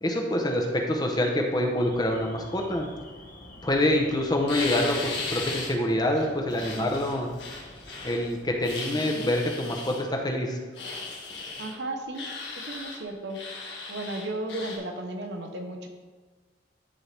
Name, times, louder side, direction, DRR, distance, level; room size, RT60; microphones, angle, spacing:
voice 1, 0.0-2.9 3.6-7.3 8.0-10.6, left 1 dB, 25° left, 1 dB, 0.9 m, -26 dB
Alarm, 1.8-8.7, left 1 dB, 50° left, 1.2 m, -48 dB
sound 1, 4.5-5.7 6.2-8.2 8.6-10.0 10.7-11.7 12.1-13.0 13.3-14.8, left 3 dB, 80° left, 1.6 m, -36 dB
voice 2, 11.6-12.3 12.6-13.4 13.9-15.9, right 2 dB, 75° right, 3 dB, 1.0 m, -34 dB
12.5 x 4.4 x 3.4 m, 1.3 s
head